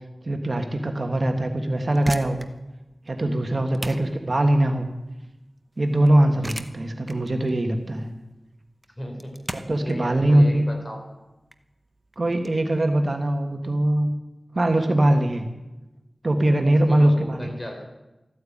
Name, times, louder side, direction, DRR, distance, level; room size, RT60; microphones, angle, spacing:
voice 1, 0.2-2.4 3.1-4.9 5.8-8.1 9.5-10.7 12.2-14.1 14.5-15.4 16.2-17.5, right 1 dB, 50° right, 5 dB, 1.6 m, -21 dB
sound 1, 1.7-12.5, right 1 dB, 20° right, 1.0 m, -39 dB
voice 2, 8.9-9.4 9.8-11.1 16.9-17.8, equal, 30° left, 2 dB, 4.4 m, -36 dB
14.0 x 9.3 x 8.7 m, 1.0 s
wide cardioid pair, 55°, 0 cm